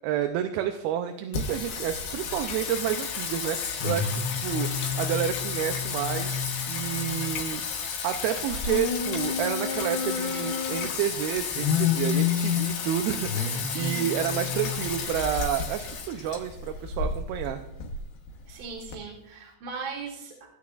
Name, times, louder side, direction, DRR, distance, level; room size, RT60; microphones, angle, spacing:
voice 1, 0.0-6.4 6.7-7.6 8.0-17.6, right 10 dB, 85° right, 6 dB, 2.5 m, -30 dB
Singing, 1.3-18.9, left 6 dB, 75° left, 2.9 m, -30 dB
voice 2, 13.7-14.1 18.5-20.5, right 4 dB, 65° right, -3 dB, 3.1 m, -38 dB
17.0 x 9.4 x 2.4 m, 0.78 s
omnidirectional pair, 4.4 m